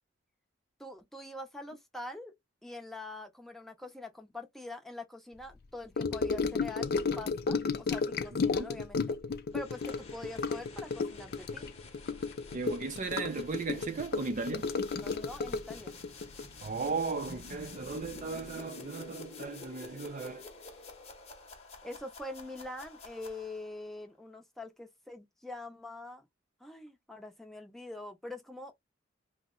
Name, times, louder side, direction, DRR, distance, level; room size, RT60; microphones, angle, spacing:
voice 1, 0.8-2.3 2.6-9.2 9.5-11.7 15.0-16.0 21.8-26.2 26.6-28.7, left 2 dB, ahead, 0.6 m, -44 dB
Gurgling / Sink (filling or washing) / Trickle dribble, 6.0-17.6 17.9-18.2 18.5-18.6, left 4 dB, 55° left, 0.4 m, -33 dB
sound 1, 9.5-23.8, left 3 dB, 35° left, 0.8 m, -50 dB
voice 2, 12.5-14.7 16.6-20.5, right 4 dB, 40° right, 0.4 m, -36 dB
2.8 x 2.1 x 3.7 m
head